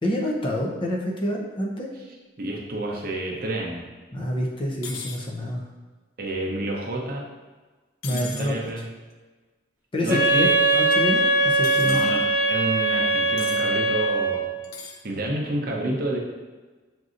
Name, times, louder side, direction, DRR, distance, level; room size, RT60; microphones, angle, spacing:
voice 1, 0.0-1.9 4.1-5.6 8.0-8.5 9.9-12.0, equal, 25° left, -1 dB, 0.5 m, -27 dB
voice 2, 2.4-3.8 6.2-7.3 8.1-8.9 10.0-10.5 11.8-14.5 15.0-16.2, right 1 dB, 50° right, -1 dB, 0.6 m, -29 dB
sound 1, 4.8-5.2 8.0-8.5 11.6-12.1 13.4-13.6 14.6-15.0, left 5 dB, 85° left, 0.5 m, -37 dB
Wind instrument woodwind instrument, 10.1-14.5, right 2 dB, 10° right, 0.8 m, -21 dB
6.0 x 2.6 x 2.5 m, 1.3 s
head